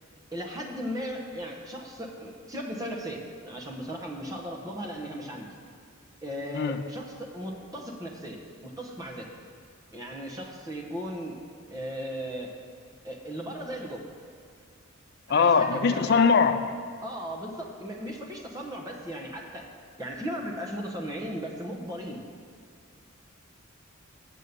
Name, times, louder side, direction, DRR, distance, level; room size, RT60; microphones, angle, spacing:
voice 1, 0.3-5.5 6.2-9.3 9.9-11.4 11.7-12.5 13.0-14.1 15.3-16.2 17.0-19.7 20.0-22.2, equal, 15° right, 0 dB, 1.0 m, -36 dB
voice 2, 15.3-16.8, left 5 dB, 50° left, 9 dB, 0.4 m, -22 dB
7.4 x 6.8 x 6.7 m, 2.3 s
head